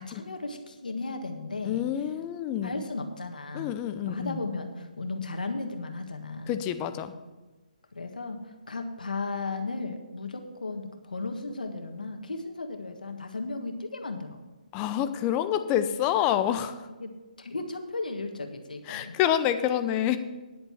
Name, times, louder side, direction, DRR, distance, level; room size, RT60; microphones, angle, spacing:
voice 1, 0.0-1.9 2.6-6.6 7.9-14.4 17.0-17.1 17.4-19.2, left 3 dB, 85° left, 5 dB, 1.5 m, -35 dB
voice 2, 1.6-2.8 3.5-4.4 6.5-7.1 14.7-16.9 18.9-20.2, left 10 dB, 20° left, 10 dB, 0.6 m, -27 dB
10.5 x 8.1 x 5.8 m, 1.2 s
hypercardioid pair, 155°, 4 cm